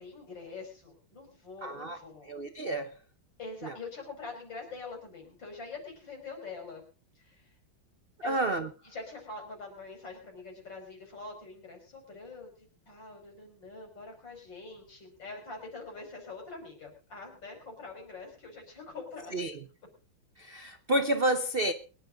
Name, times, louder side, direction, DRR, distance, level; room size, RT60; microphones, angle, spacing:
voice 1, 0.0-2.3 3.4-6.8 7.2-7.4 8.2-8.4 8.8-12.5 12.9-19.4, left 3 dB, 60° left, 5.6 m, -44 dB
voice 2, 1.6-2.0 2.3-2.9 3.6-3.7 8.2-8.7 19.3-19.6 20.4-21.7, right 1 dB, 50° right, 0.7 m, -30 dB
23.5 x 10.5 x 3.8 m
omnidirectional pair, 2.3 m